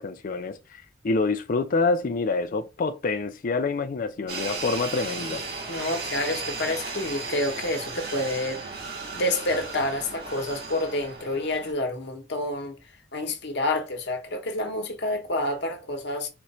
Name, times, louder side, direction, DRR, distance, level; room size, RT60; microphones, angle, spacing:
voice 1, 0.0-5.4, left 3 dB, 45° left, 0.4 m, -27 dB
sound 1, 4.3-11.7, right 3 dB, 55° right, 1.7 m, -35 dB
voice 2, 5.7-8.6 9.2-12.8 13.1-16.3, left 1 dB, 65° left, 1.1 m, -28 dB
4.4 x 2.5 x 4.2 m
head